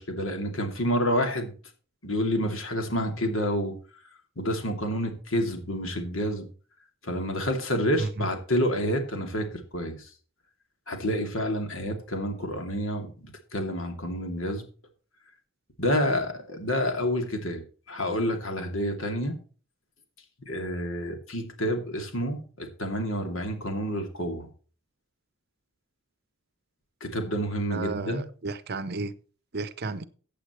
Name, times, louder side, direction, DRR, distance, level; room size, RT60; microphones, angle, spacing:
voice 1, 0.0-1.5 2.0-3.7 4.4-6.5 7.0-10.1 10.9-14.6 15.8-17.6 17.9-19.4 20.5-24.5 27.0-28.3, equal, 70° left, 2.7 m, -29 dB
voice 2, 27.7-29.1 29.5-30.1, right 3 dB, 50° right, 0.8 m, -33 dB
15.0 x 8.5 x 3.1 m
head